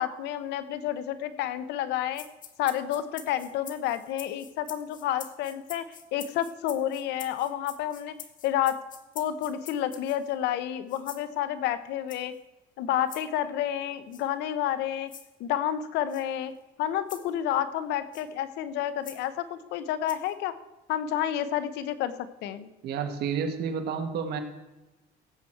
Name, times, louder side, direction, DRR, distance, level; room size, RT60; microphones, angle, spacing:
voice 1, 0.0-2.2 2.6-5.8 6.1-8.1 8.4-8.8 9.1-12.3 12.8-15.1 15.4-16.5 16.8-20.5 20.9-22.1 22.4-22.7, left 11 dB, 90° left, 13 dB, 0.9 m, -30 dB
sound 1, 2.1-10.3 10.9-11.3 12.1-12.4 13.1-13.2 14.1-14.3 15.1-15.3 16.1-16.2 17.1-17.3 18.1-18.3 19.0-19.2 20.1-20.3, left 8 dB, 50° left, 1.2 m, -46 dB
voice 2, 22.8-24.4, right 6 dB, 75° right, 6 dB, 1.6 m, -30 dB
16.5 x 7.8 x 4.6 m, 1.0 s
cardioid pair, 110°, 17 cm